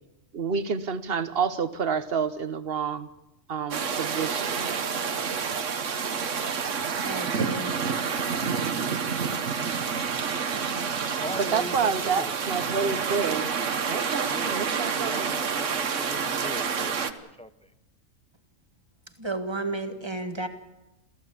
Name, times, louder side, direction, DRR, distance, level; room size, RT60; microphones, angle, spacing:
voice 1, 0.3-3.1 3.5-4.7 11.4-13.5 13.9-15.3, right 6 dB, 50° right, 1.2 m, -29 dB
sound 1, 3.7-17.1, right 6 dB, 65° right, 1.5 m, -28 dB
voice 2, 7.0-7.8 19.2-20.5, right 2 dB, 20° right, 1.8 m, -32 dB
voice 3, 11.2-12.3 14.2-17.1 17.4-17.5, equal, 5° left, 0.7 m, -39 dB
27.0 x 15.0 x 8.5 m
omnidirectional pair, 1.4 m